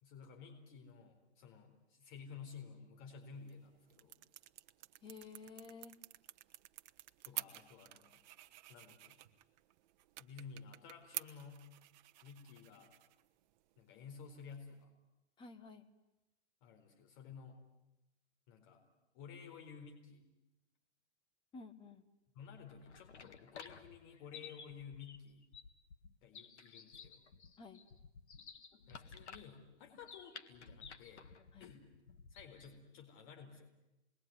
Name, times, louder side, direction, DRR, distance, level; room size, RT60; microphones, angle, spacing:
voice 1, 0.0-4.2 7.2-8.2 8.7-9.2 10.2-11.7 12.2-12.9 13.8-14.9 16.6-17.6 18.5-18.8 19.1-20.3 22.3-25.5 26.2-27.3 28.9-31.3 31.6-31.9 32.3-33.7, left 6 dB, 40° left, 4 dB, 4.2 m, -53 dB
sound 1, 3.3-14.8, right 15 dB, 40° right, 1.1 m, -52 dB
voice 2, 5.0-6.0 15.4-15.9 21.5-22.0 27.6-27.8 31.5-31.7, left 4 dB, 15° left, 10 dB, 1.3 m, -52 dB
sound 2, 22.5-32.8, left 6 dB, 75° left, 2.1 m, -55 dB
28.5 x 21.5 x 9.7 m, 0.95 s
hypercardioid pair, 140°, 34 cm